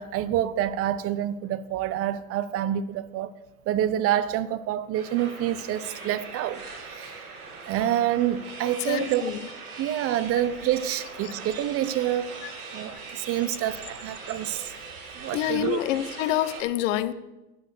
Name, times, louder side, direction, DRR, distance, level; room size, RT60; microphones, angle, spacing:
voice 1, 0.0-3.3 3.7-6.6 6.9-7.2 7.7-9.2 9.8-12.3 12.7-14.7 15.2-15.8, right 11 dB, 30° right, 0.7 m, -27 dB
sound 1, 4.9-16.6, right 4 dB, 75° right, 6.2 m, -41 dB
voice 2, 8.8-9.4 11.2-11.3 12.4-12.5 15.3-17.1, left 13 dB, 55° left, 1.0 m, -27 dB
12.0 x 9.8 x 6.6 m
hypercardioid pair, 90°, 44 cm